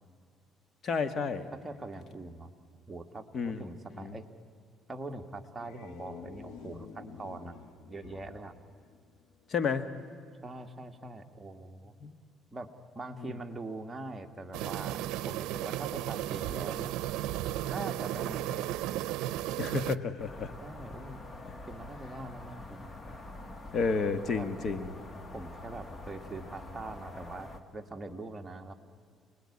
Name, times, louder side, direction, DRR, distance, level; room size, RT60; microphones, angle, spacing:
voice 1, 0.8-1.5 3.3-3.6 4.0-4.2 9.5-9.9 12.0-12.1 13.2-13.3 19.6-20.5 23.7-24.9, left 5 dB, 45° left, 11 dB, 1.5 m, -31 dB
voice 2, 1.5-2.5 2.9-4.3 4.9-7.6 7.9-8.5 10.4-11.9 12.5-12.7 13.0-16.9 17.7-18.7 20.6-22.9 24.3-24.5 25.3-28.7, right 2 dB, 15° right, 4 dB, 1.7 m, -43 dB
sound 1, 5.4-9.6, left 6 dB, 80° left, 1.7 m, -49 dB
sound 2, 14.5-20.0, right 13 dB, 85° right, 0.6 m, -34 dB
sound 3, 20.2-27.6, left 2 dB, 25° left, 1.8 m, -46 dB
29.5 x 20.5 x 9.8 m, 2.2 s
cardioid pair, 120°, 0 cm